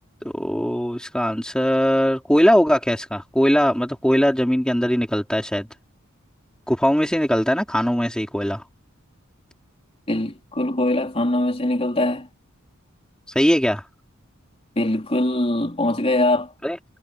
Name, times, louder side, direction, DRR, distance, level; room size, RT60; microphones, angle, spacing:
voice 1, 0.2-5.7 6.7-8.6 13.3-13.8 16.6-16.8, equal, 5° left, 3.2 m, -20 dB
voice 2, 10.1-12.3 14.8-16.5, left 1 dB, 30° left, 4.0 m, -22 dB
head